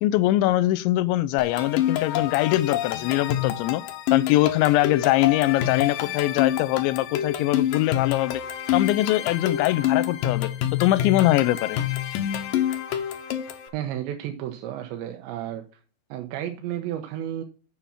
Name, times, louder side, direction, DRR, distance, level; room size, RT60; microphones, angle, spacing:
voice 1, 0.0-3.8 4.1-8.4 8.7-10.5 10.8-11.8, left 16 dB, 90° left, 3.0 m, -22 dB
sound 1, 1.4-13.7, left 11 dB, 75° left, 2.0 m, -27 dB
voice 2, 13.7-15.6 16.1-17.4, right 11 dB, 85° right, 3.0 m, -32 dB
7.3 x 7.1 x 5.7 m
omnidirectional pair, 5.2 m